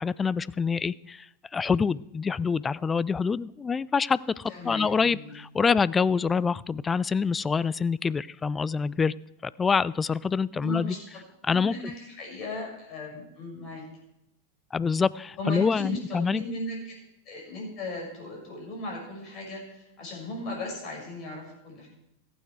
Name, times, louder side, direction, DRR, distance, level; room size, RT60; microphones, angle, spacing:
voice 1, 0.0-9.1 9.4-11.0 11.4-11.7 14.7-16.4, left 5 dB, 20° left, 20 dB, 0.3 m, -26 dB
voice 2, 4.5-5.3 10.6-13.8 15.4-16.9 17.3-21.9, left 2 dB, 40° left, -1 dB, 5.9 m, -37 dB
14.5 x 9.0 x 4.7 m, 0.83 s
figure-of-eight pair, 90°, 0 cm